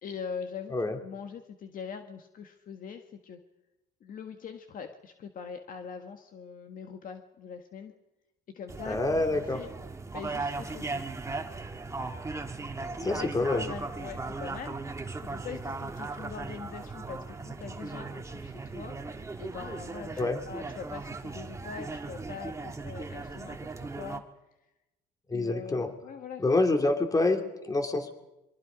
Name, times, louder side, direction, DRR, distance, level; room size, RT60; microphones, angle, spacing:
voice 1, 0.0-3.4 4.0-7.9 8.6-9.7 10.1-11.0 13.0-24.2 25.3-26.4, left 6 dB, 55° left, 6 dB, 1.7 m, -43 dB
sound 1, 8.7-24.2, right 3 dB, 15° right, 1.6 m, -38 dB
voice 2, 8.8-9.6 13.0-13.7 20.2-20.4 25.3-25.9 26.4-28.1, left 2 dB, 20° left, 5 dB, 2.8 m, -27 dB
26.0 x 23.5 x 5.2 m, 0.96 s
cardioid pair, 110°, 17 cm